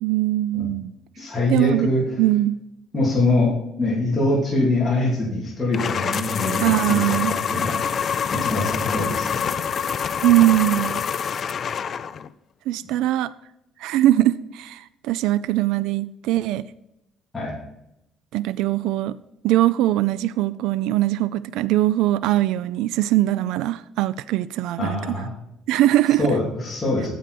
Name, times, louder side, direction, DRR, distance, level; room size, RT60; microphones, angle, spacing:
voice 1, 0.0-0.9 1.5-1.9 2.2-2.6 6.6-7.4 10.2-11.0 12.7-13.3 13.8-16.6 18.3-19.2 19.4-25.0 25.7-26.3, right 14 dB, 85° right, 0.3 m, -21 dB
voice 2, 1.2-2.0 2.9-3.5 3.8-7.8 8.3-9.6 17.3-17.5 24.8-25.3 26.2-27.1, left 2 dB, 15° left, 3.0 m, -23 dB
sound 1, 5.7-12.3, left 7 dB, 40° left, 0.4 m, -26 dB
9.3 x 7.5 x 4.3 m
cardioid pair, 145°, 0 cm